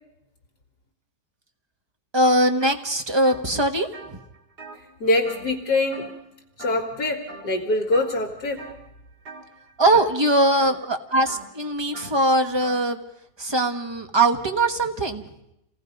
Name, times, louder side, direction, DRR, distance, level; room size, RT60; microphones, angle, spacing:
voice 1, 2.1-3.9 9.8-13.0 13.4-15.2, right 1 dB, 20° right, 6 dB, 1.1 m, -21 dB
sound 1, 2.6-2.8 3.1-5.6 5.9-6.3 6.6-7.0 7.3-8.1 8.6-8.9 9.2-12.9, right 2 dB, 65° right, 2.8 m, -43 dB
voice 2, 4.8-6.2 6.6-8.6, left 2 dB, 65° left, 1 dB, 2.4 m, -24 dB
28.0 x 18.0 x 5.2 m, 0.84 s
omnidirectional pair, 1.9 m